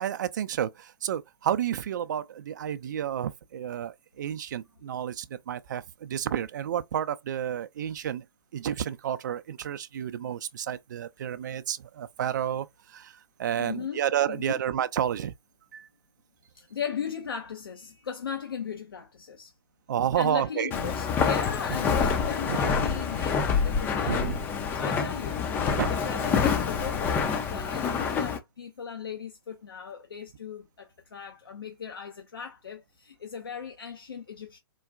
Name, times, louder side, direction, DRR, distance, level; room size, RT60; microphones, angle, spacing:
voice 1, 0.0-8.2 8.5-12.7 12.9-13.1 13.4-15.3 15.7-15.9 19.9-20.7 22.5-22.7 24.1-24.4 25.8-25.9, right 10 dB, 50° right, 0.4 m, -30 dB
voice 2, 13.6-14.6 16.6-19.5 20.1-24.3 24.7-34.6, left 7 dB, 70° left, 0.6 m, -37 dB
Walk footsteps, 20.7-28.4, left 6 dB, 15° left, 0.4 m, -27 dB
3.8 x 2.2 x 2.4 m
figure-of-eight pair, 120°, 13 cm